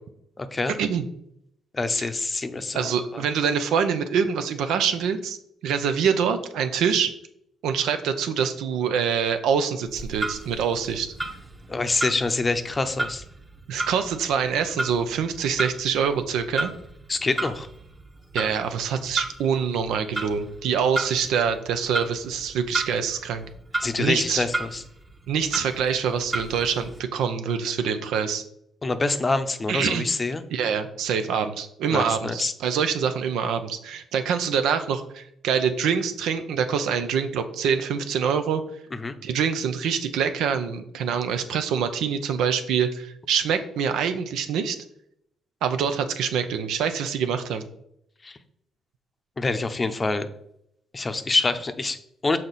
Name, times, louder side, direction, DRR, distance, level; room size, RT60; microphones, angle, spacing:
voice 1, 0.4-0.8 1.7-3.2 11.7-13.2 17.1-17.7 23.8-24.8 28.8-30.4 31.9-32.5 39.0-39.1 48.2-48.4 49.4-50.3 50.9-52.4, left 3 dB, 25° left, 9 dB, 0.6 m, -26 dB
voice 2, 2.7-5.4 5.6-7.1 7.6-11.1 13.7-16.7 18.3-23.5 24.0-24.4 25.3-28.4 29.7-30.1 30.5-38.6 39.2-44.8 45.6-47.6, right 7 dB, 85° right, 8 dB, 0.6 m, -25 dB
Clock, 9.8-27.0, right 2 dB, 20° right, 1.0 m, -34 dB
6.4 x 4.3 x 4.0 m, 0.74 s
cardioid pair, 90°, 0 cm